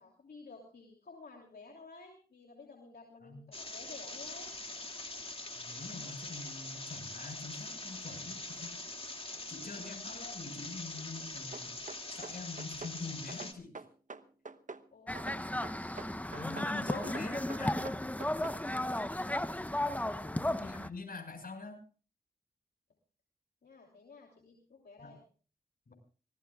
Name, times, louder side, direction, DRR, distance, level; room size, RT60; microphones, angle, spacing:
voice 1, 0.0-4.5 9.3-9.9 14.9-15.6 16.7-16.9 18.4-19.0 20.0-20.3 23.6-25.2, left 3 dB, 85° left, 0 dB, 3.0 m, -54 dB
sound 1, 3.5-13.5, left 2 dB, 35° left, 2.4 m, -43 dB
voice 2, 5.6-8.7 9.5-11.8 12.1-13.8 16.3-17.8 19.8-21.8 25.0-25.1 25.9-26.0, left 3 dB, 65° left, 5 dB, 5.9 m, -45 dB
sound 2, 11.5-13.0 13.3-14.9 15.2-16.7 17.0-18.6, right 4 dB, 50° right, 1.0 m, -46 dB
sound 3, 15.1-20.9, left 1 dB, 10° left, 0.9 m, -34 dB
25.5 x 18.5 x 2.4 m, 0.38 s
cardioid pair, 55°, 16 cm